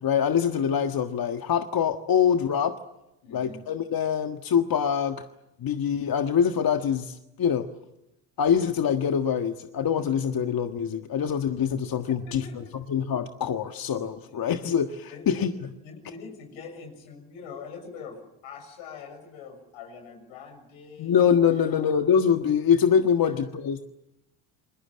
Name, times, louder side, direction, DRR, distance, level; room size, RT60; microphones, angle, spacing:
voice 1, 0.0-2.8 3.3-5.2 5.6-7.7 8.4-15.5 21.0-23.8, left 7 dB, 45° left, 6 dB, 1.6 m, -24 dB
voice 2, 3.2-3.6 12.1-12.8 14.2-14.4 15.1-15.5 15.8-21.2 21.5-22.0 23.2-23.3, left 5 dB, 75° left, 5 dB, 6.7 m, -43 dB
29.0 x 21.0 x 8.7 m, 0.92 s
hypercardioid pair, 65°, 47 cm